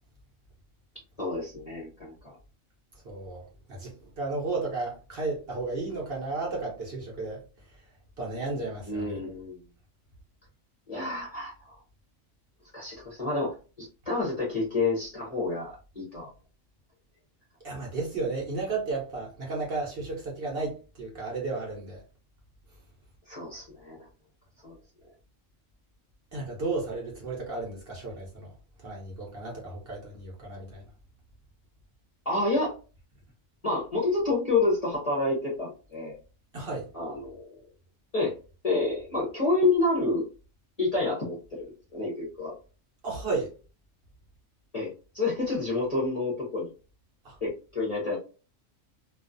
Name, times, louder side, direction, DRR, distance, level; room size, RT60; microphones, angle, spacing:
voice 1, 1.2-2.4 8.9-9.6 10.9-11.8 12.7-16.3 23.3-24.1 24.6-24.8 32.3-32.7 33.6-36.2 36.9-37.5 38.1-38.3 38.6-40.3 40.8-41.4 41.9-42.6 44.7-46.7 47.4-48.2, left 3 dB, 40° left, 0.6 m, -29 dB
voice 2, 3.0-7.4 8.2-9.2 17.6-22.0 26.3-28.5 28.8-30.9 36.5-36.9 43.0-43.5 47.2-47.4, right 3 dB, 55° right, 0.8 m, -33 dB
2.4 x 2.3 x 2.5 m
omnidirectional pair, 1.4 m